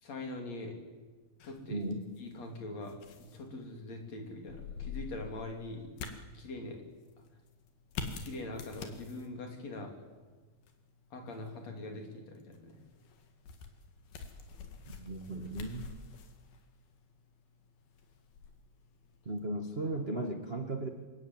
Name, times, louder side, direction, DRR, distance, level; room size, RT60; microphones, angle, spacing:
voice 1, 0.0-0.8 1.4-1.8 2.2-3.0 3.3-5.9 6.3-6.8 8.2-9.9 11.1-12.8, left 2 dB, 50° left, 3 dB, 4.3 m, -42 dB
sound 1, 1.4-19.5, left 5 dB, 90° left, 3.9 m, -48 dB
voice 2, 1.7-2.0 15.0-16.0 19.2-20.9, right 2 dB, 60° right, 4 dB, 0.6 m, -36 dB
25.0 x 21.0 x 9.2 m, 1.4 s
omnidirectional pair, 4.1 m